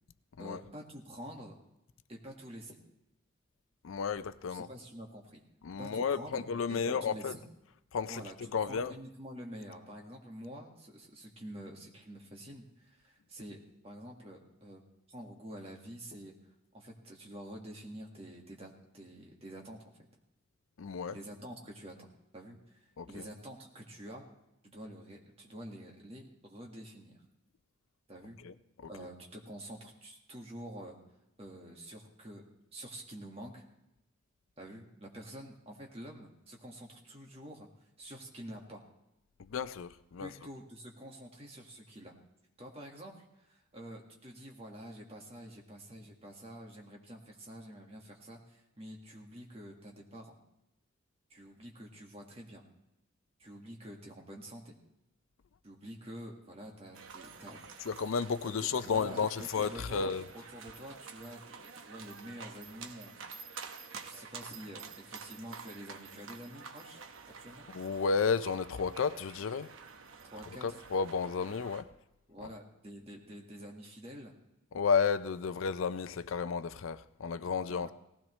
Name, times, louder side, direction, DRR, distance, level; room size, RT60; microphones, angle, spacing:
voice 1, 0.4-1.5 2.1-2.8 4.5-5.4 5.8-6.4 6.7-7.4 8.1-13.6 13.8-14.8 15.1-16.3 16.7-20.1 21.1-22.1 22.3-24.2 24.6-27.1 28.1-28.4 28.9-30.9 31.4-32.4 32.7-33.6 34.6-37.7 38.0-38.8 40.2-42.1 42.6-50.4 51.3-52.7 53.4-54.7 55.6-57.6 58.4-58.5 58.8-63.2 64.0-67.0 67.4-67.7 70.2-70.8 72.3-74.3 77.6-77.9, equal, 30° right, 1 dB, 1.7 m, -48 dB
voice 2, 3.8-4.7 5.6-7.4 7.9-8.2 8.5-8.9 20.8-21.2 23.0-23.3 28.4-28.5 28.8-29.1 39.4-40.3 57.8-60.3 67.7-69.7 70.6-71.9 72.4-72.5 74.7-77.9, left 5 dB, 75° left, 14 dB, 0.5 m, -32 dB
sound 1, 56.9-71.8, right 5 dB, 75° right, 0.9 m, -49 dB
18.0 x 15.5 x 3.2 m, 0.89 s
head